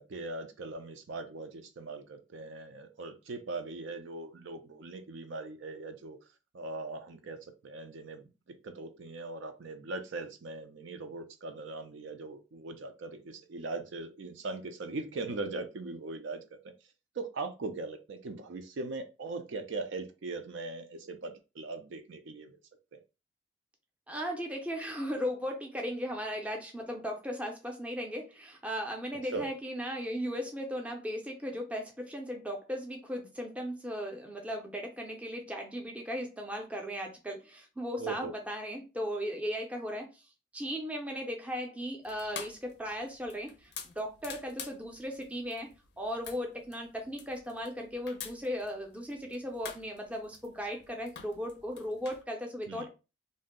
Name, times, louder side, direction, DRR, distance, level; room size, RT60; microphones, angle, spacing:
voice 1, 0.0-6.2 6.5-16.7 17.2-22.6 22.9-23.0 29.3-29.5 38.0-38.3 52.7-52.9, right 3 dB, 70° right, 7 dB, 0.4 m, -40 dB
voice 2, 24.1-40.2 40.5-45.7 46.0-52.9, equal, 5° right, 1 dB, 0.5 m, -37 dB
sound 1, 42.0-52.2, left 7 dB, 55° left, 0.4 m, -48 dB
2.6 x 2.0 x 3.6 m, 0.29 s
head